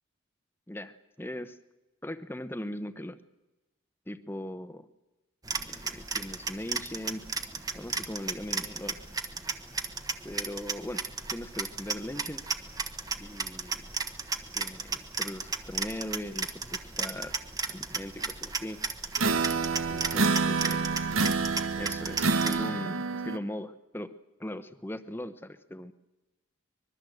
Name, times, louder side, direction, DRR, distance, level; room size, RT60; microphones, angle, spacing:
voice 1, 0.7-1.6 2.0-3.2 4.1-4.9 5.7-7.3 7.7-9.0 10.2-12.5 13.2-13.9 14.5-17.4 17.7-18.8 19.9-21.2 21.8-24.1 24.4-25.9, left 1 dB, 10° left, 11 dB, 0.9 m, -39 dB
sound 1, 5.4-22.6, right 4 dB, 15° right, 1.1 m, -35 dB
sound 2, 19.2-23.4, right 4 dB, 85° right, 1.3 m, -28 dB
24.5 x 21.5 x 7.9 m, 1.1 s
head